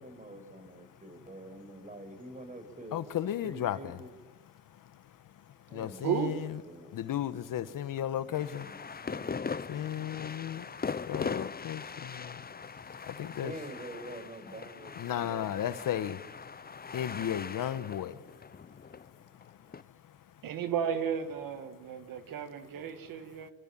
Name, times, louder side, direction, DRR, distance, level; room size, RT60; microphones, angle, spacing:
voice 1, 0.0-3.1 3.4-4.1 5.7-6.9 8.2-9.3 13.4-15.5, right 1 dB, 25° right, 6.1 m, -47 dB
voice 2, 2.9-4.0 4.7-5.0 5.5-6.6 6.9-8.7 9.7-10.7 11.1-13.5 15.0-16.2 16.9-18.3, left 10 dB, 75° left, 1.3 m, -35 dB
voice 3, 6.0-6.5 20.4-23.5, right 8 dB, 80° right, 1.9 m, -34 dB
sound 1, 8.3-19.8, left 5 dB, 30° left, 0.8 m, -40 dB
26.5 x 25.0 x 7.6 m
supercardioid pair, 60°, 33 cm